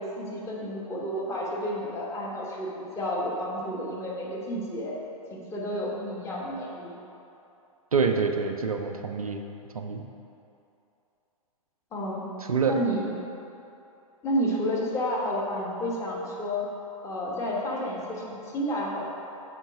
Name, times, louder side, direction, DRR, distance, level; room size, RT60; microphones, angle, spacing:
voice 1, 0.0-4.9 5.3-6.9 11.9-12.2 12.7-13.1 14.2-16.6 17.0-19.0, equal, 15° left, -4 dB, 1.2 m, -30 dB
voice 2, 7.9-9.4 9.7-10.0 12.5-12.8, right 5 dB, 75° right, 5 dB, 0.5 m, -26 dB
6.4 x 4.5 x 5.0 m, 2.8 s
figure-of-eight pair, 105°, 18 cm